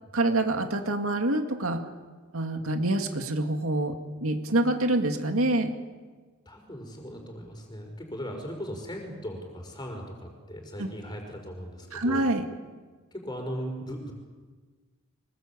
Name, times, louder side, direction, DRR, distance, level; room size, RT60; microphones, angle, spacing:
voice 1, 0.1-1.8 2.3-4.0 4.2-5.7 10.8-10.9 11.9-12.4, right 2 dB, 80° right, 5 dB, 2.3 m, -26 dB
voice 2, 6.5-12.3 13.1-14.1, equal, 20° left, 3 dB, 5.3 m, -38 dB
24.5 x 21.5 x 8.6 m, 1.4 s
head